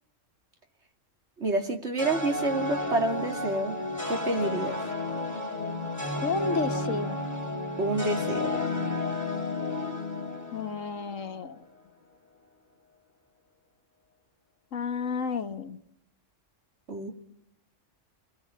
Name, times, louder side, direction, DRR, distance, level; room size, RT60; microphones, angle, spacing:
voice 1, 1.4-3.7 4.1-4.8 7.8-8.4 16.9-17.1, right 2 dB, 60° right, 4 dB, 3.2 m, -28 dB
sound 1, 2.0-11.3, left 2 dB, 10° right, 5.9 m, -32 dB
voice 2, 6.2-7.2 10.5-11.5 14.7-15.8, left 5 dB, 80° left, 9 dB, 1.7 m, -31 dB
29.0 x 21.5 x 8.6 m, 0.77 s
omnidirectional pair, 1.3 m